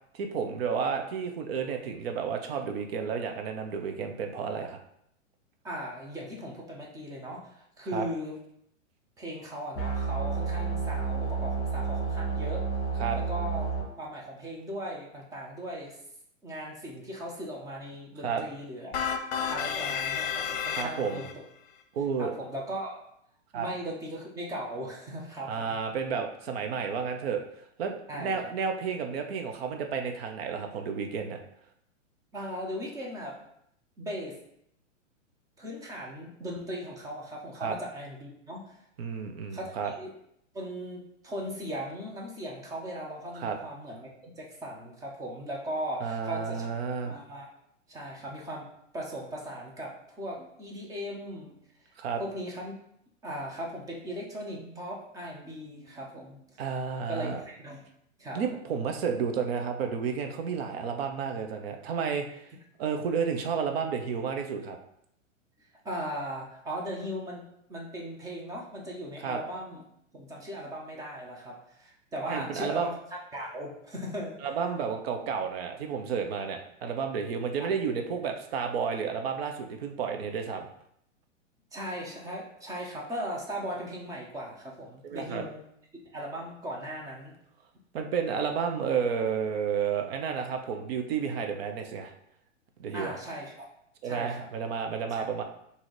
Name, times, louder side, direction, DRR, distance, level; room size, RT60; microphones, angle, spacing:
voice 1, 0.1-4.8 7.9-8.0 13.0-13.2 18.2-18.4 20.7-21.2 21.9-22.3 23.5-23.7 25.4-27.4 27.8-31.4 37.6-37.8 39.0-39.9 43.3-43.6 46.0-47.2 52.0-52.2 56.6-57.4 58.3-62.5 62.8-64.8 69.2-69.4 72.3-72.9 74.4-80.7 85.0-85.5 87.9-92.1 92.8-93.1 94.0-95.4, right 6 dB, 50° right, 5 dB, 0.7 m, -31 dB
voice 2, 5.6-8.3 9.2-12.7 13.1-13.7 14.0-16.0 16.4-18.9 19.5-21.4 22.2-23.0 23.5-25.8 28.1-28.5 32.3-33.4 34.0-34.3 35.6-38.8 39.5-40.1 40.5-46.7 47.0-47.5 47.9-48.7 48.9-51.6 52.2-52.7 53.2-56.6 57.1-57.8 58.2-58.4 65.8-69.8 70.1-73.0 73.3-74.4 81.7-85.6 86.1-87.3 92.9-93.7 94.0-94.5 95.1-95.3, equal, 10° right, -2 dB, 0.6 m, -38 dB
sound 1, 9.7-13.8, right 5 dB, 30° left, 1.8 m, -30 dB
sound 2, 18.9-21.3, left 7 dB, 55° left, 0.7 m, -31 dB
3.8 x 2.8 x 4.7 m, 0.72 s
hypercardioid pair, 140°, 39 cm